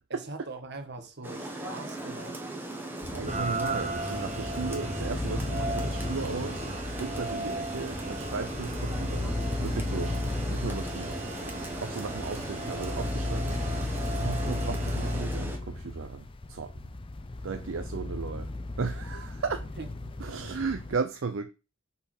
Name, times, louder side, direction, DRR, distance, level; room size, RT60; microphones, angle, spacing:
voice 1, 0.1-2.4 10.9-11.4 19.8-20.2, right 2 dB, 55° right, 1.4 m, -42 dB
Rain, 1.2-15.6, right 1 dB, 10° right, 1.1 m, -38 dB
voice 2, 2.9-10.2 10.5-11.2 11.8-16.9 17.4-18.5 18.8-19.7 20.2-21.5, right 4 dB, 70° right, 0.5 m, -35 dB
sound 1, 3.0-21.0, left 2 dB, 25° left, 0.5 m, -35 dB
Rain 2, 3.3-15.2, right 2 dB, 35° right, 1.2 m, -38 dB
5.6 x 4.3 x 5.9 m
head